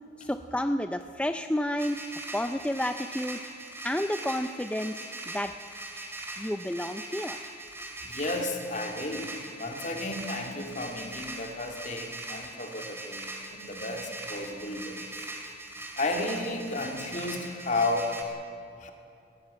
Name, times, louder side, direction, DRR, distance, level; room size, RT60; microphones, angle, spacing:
voice 1, 0.2-2.0 2.3-3.4 3.8-5.5 5.9-6.1 6.4-7.4, left 1 dB, 5° left, 8 dB, 0.5 m, -30 dB
sound 1, 1.8-18.2, right 2 dB, 15° right, 2.5 m, -41 dB
voice 2, 8.0-13.2 13.5-15.1 16.0-18.2 18.8-18.9, left 2 dB, 40° left, 3 dB, 2.4 m, -33 dB
20.0 x 16.5 x 8.9 m, 2.7 s
head